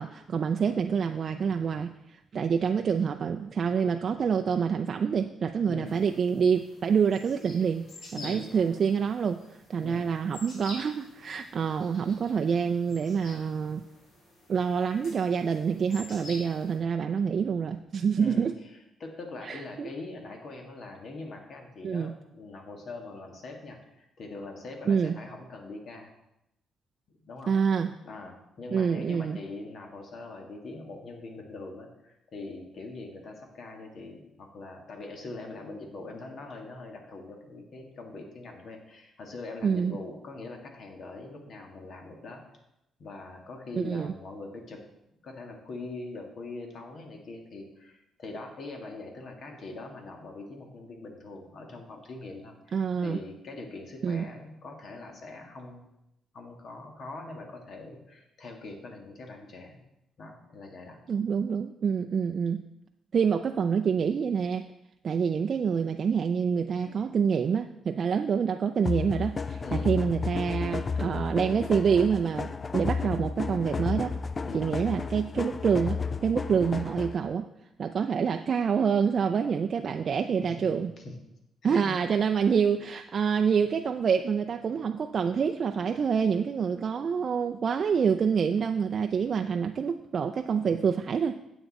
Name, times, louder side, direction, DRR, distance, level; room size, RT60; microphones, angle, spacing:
voice 1, 0.0-7.8 8.2-9.4 9.7-13.8 14.5-18.5 19.4-19.9 21.8-22.1 24.9-25.2 27.5-28.0 28.7-29.4 39.6-40.0 43.8-44.1 52.7-53.2 54.0-54.3 61.1-62.7 63.1-64.7 65.0-74.2 74.5-77.5 77.8-80.9 81.6-91.4, right 6 dB, 50° right, 5 dB, 0.4 m, -27 dB
voice 2, 5.7-6.0 8.2-8.6 9.8-10.0 18.2-18.5 19.0-26.1 27.2-27.5 28.0-42.4 43.0-44.8 45.2-55.9 56.3-59.8 60.2-61.0 69.6-69.9 74.4-74.6 80.4-81.2 81.6-82.0 90.6-90.9, left 3 dB, 55° left, 2 dB, 1.9 m, -42 dB
sound 1, 5.8-16.8, left 1 dB, 75° left, 3.8 m, -49 dB
sound 2, 68.9-77.3, left 5 dB, 35° left, 0.4 m, -32 dB
9.2 x 8.0 x 4.2 m, 0.86 s
cardioid pair, 90°, 0 cm